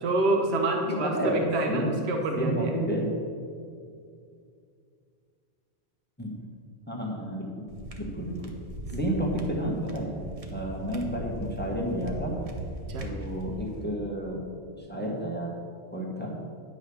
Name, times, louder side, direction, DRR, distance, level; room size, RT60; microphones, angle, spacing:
voice 1, 0.0-2.7 8.9-9.0 12.9-13.1, right 2 dB, 75° right, 3 dB, 1.2 m, -27 dB
voice 2, 1.0-2.0 2.4-3.1 6.2-6.4 6.9-7.7 8.0-8.5 8.9-10.2 10.5-12.5 13.0-14.4 14.8-15.5 15.9-16.5, right 1 dB, 10° left, -2 dB, 1.2 m, -31 dB
sound 1, 7.7-13.8, right 1 dB, 35° right, 0.9 m, -39 dB
10.0 x 4.9 x 6.9 m, 2.3 s
omnidirectional pair, 1.1 m